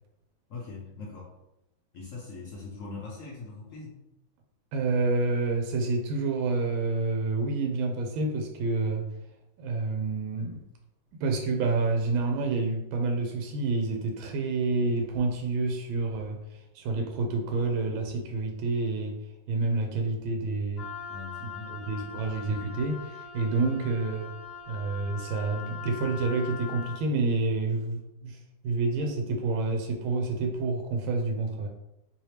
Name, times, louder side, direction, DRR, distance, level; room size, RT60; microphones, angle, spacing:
voice 1, 0.5-1.3 1.9-4.0 21.1-21.8, left 4 dB, 80° left, -3 dB, 0.7 m, -41 dB
voice 2, 4.7-9.1 9.6-10.6 11.2-19.2 19.5-20.9 21.4-24.3 24.7-28.4 28.6-31.7, right 3 dB, 85° right, 3 dB, 1.4 m, -28 dB
Wind instrument woodwind instrument, 20.8-27.0, left 6 dB, 50° left, 1.2 m, -42 dB
3.3 x 2.8 x 3.2 m, 0.88 s
omnidirectional pair, 2.2 m